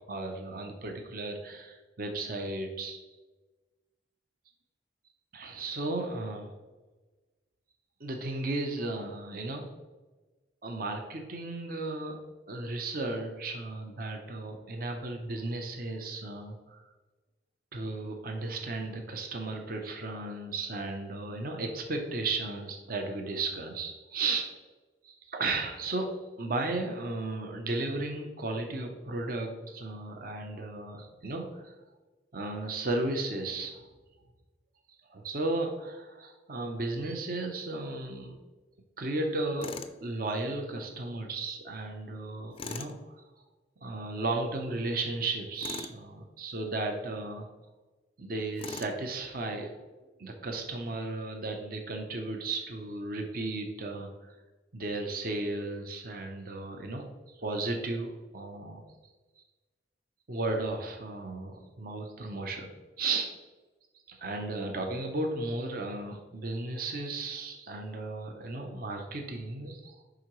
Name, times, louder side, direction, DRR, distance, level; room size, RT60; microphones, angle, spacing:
voice 1, 0.1-3.0 5.3-6.5 8.0-9.7 10.6-12.2 12.5-16.9 17.7-24.5 25.0-31.7 32.3-33.8 35.1-38.4 39.0-39.7 40.0-43.0 43.8-47.5 48.2-49.8 50.2-54.1 54.7-57.0 57.4-58.8 60.3-62.7 63.0-63.3 64.1-70.0, right 2 dB, 55° right, 3 dB, 0.8 m, -34 dB
Tools, 39.6-40.0 42.6-42.9 45.6-46.0 48.6-49.0, left 4 dB, 30° left, 0.4 m, -39 dB
9.8 x 3.7 x 3.1 m, 1.2 s
head